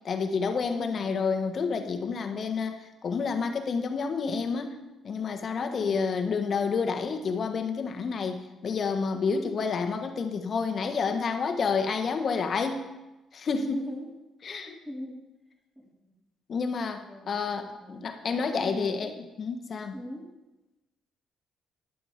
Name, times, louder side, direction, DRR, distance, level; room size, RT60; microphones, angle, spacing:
voice 1, 0.0-4.8 5.0-12.9 13.3-13.9 14.4-14.7 16.5-19.1 19.4-19.9, left 5 dB, 50° left, 7 dB, 1.3 m, -29 dB
voice 2, 0.8-1.1 5.6-6.0 13.7-14.1 14.5-15.2 15.8-15.9 17.1-17.3 17.6-18.0 18.3-19.2 19.9-20.3, left 1 dB, 10° right, -4 dB, 3.9 m, -41 dB
11.0 x 7.8 x 5.0 m, 1.0 s
cardioid pair, 90°, 0 cm